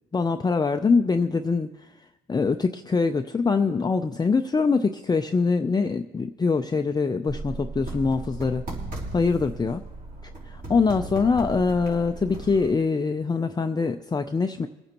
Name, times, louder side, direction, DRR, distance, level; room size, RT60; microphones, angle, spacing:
voice 1, 0.1-1.7 2.3-8.6 9.1-9.8 10.5-14.7, left 4 dB, 20° left, 6 dB, 0.5 m, -23 dB
sound 1, 7.3-12.7, right 3 dB, 45° right, 3.7 m, -37 dB
24.5 x 9.3 x 3.0 m, 1.0 s
cardioid pair, 90°, 20 cm